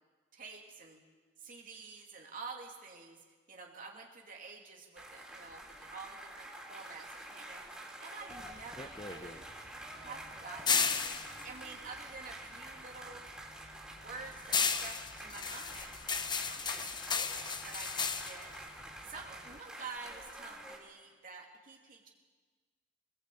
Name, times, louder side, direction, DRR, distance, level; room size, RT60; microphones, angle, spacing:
voice 1, 0.3-1.0 1.4-3.2 3.5-7.7 8.0-9.5 10.0-11.0 11.4-13.2 13.9-15.9 16.5-18.5 19.0-22.1, right 4 dB, 50° right, 0 dB, 2.8 m, -49 dB
sound 1, 5.0-20.8, right 1 dB, 5° right, 3.9 m, -48 dB
sound 2, 8.3-12.8 13.1-19.6, left 6 dB, 25° left, 1.0 m, -35 dB
23.5 x 20.0 x 8.5 m, 1.4 s
head